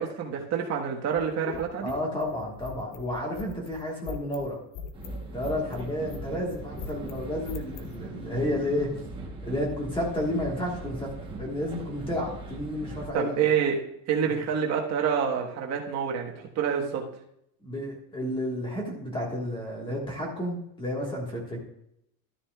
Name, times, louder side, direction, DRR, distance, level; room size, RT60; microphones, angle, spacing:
voice 1, 0.0-1.9 13.1-13.8 14.1-17.0, right 7 dB, 35° right, 0 dB, 1.5 m, -27 dB
sound 1, 1.1-8.0, left 6 dB, 35° left, 0.7 m, -41 dB
voice 2, 1.8-4.6 5.3-8.9 9.4-11.1 11.4-13.3 17.6-21.6, left 1 dB, 10° left, -1 dB, 1.6 m, -31 dB
sound 2, 4.9-13.1, right 2 dB, 10° right, 1.1 m, -40 dB
12.5 x 9.7 x 2.4 m, 0.76 s
cardioid pair, 180°, 45 cm